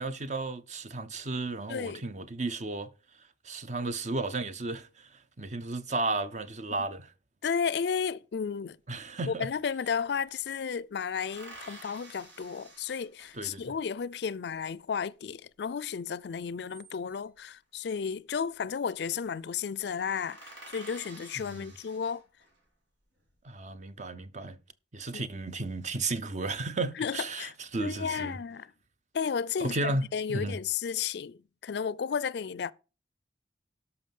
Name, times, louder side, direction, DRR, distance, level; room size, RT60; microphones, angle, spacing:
voice 1, 0.0-2.9 3.4-7.1 8.9-9.5 13.3-13.7 21.4-21.7 23.4-24.6 24.9-28.4 29.6-30.6, right 2 dB, 40° right, 0.8 m, -34 dB
voice 2, 1.7-2.0 7.4-8.8 9.3-22.2 25.1-25.2 27.0-27.5 27.8-28.7 29.1-32.7, left 6 dB, 65° left, 0.4 m, -33 dB
sound 1, 9.1-9.2 9.4-10.5 11.2-13.7 16.4-17.4 18.5-18.9 19.2-19.4 19.7-19.8 20.0-22.6 23.2-23.8, right 2 dB, 85° right, 3.3 m, -51 dB
13.0 x 5.7 x 5.4 m
head